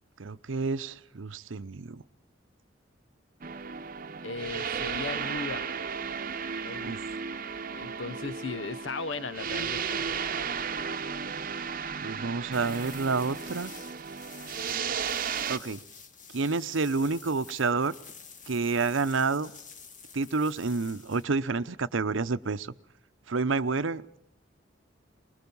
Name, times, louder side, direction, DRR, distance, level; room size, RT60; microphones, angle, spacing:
voice 1, 0.2-2.0 6.8-7.0 12.0-13.7 15.5-15.8 16.3-17.9 18.5-19.5 20.1-22.7 23.3-24.2, right 4 dB, 80° right, 14 dB, 0.8 m, -29 dB
sound 1, 3.4-15.6, right 6 dB, 45° right, 0.8 m, -34 dB
voice 2, 4.2-5.7 6.6-7.0 7.7-10.0, left 4 dB, 75° left, 16 dB, 0.9 m, -37 dB
sound 2, 12.5-21.2, left 6 dB, 40° left, 1.8 m, -49 dB
24.0 x 21.0 x 5.5 m, 0.74 s
head